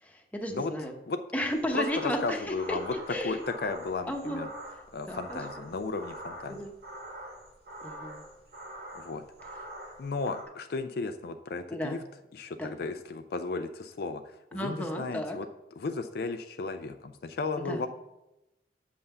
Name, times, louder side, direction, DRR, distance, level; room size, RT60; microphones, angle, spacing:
voice 1, 0.0-0.9 1.3-2.8 3.1-3.4 4.0-4.5 5.1-5.4 6.5-6.7 7.8-8.2 11.7-12.0 12.6-12.7 14.5-15.4 17.6-17.8, equal, 10° left, 3 dB, 0.9 m, -33 dB
sound 1, 1.4-10.4, right 1 dB, 55° right, 1.9 m, -44 dB
voice 2, 1.7-2.9 3.2-4.5 4.9-6.6 8.9-9.2 10.0-12.0 12.3-15.5 15.8-17.9, left 3 dB, 55° left, 8 dB, 0.4 m, -34 dB
6.8 x 5.6 x 6.7 m, 0.93 s
head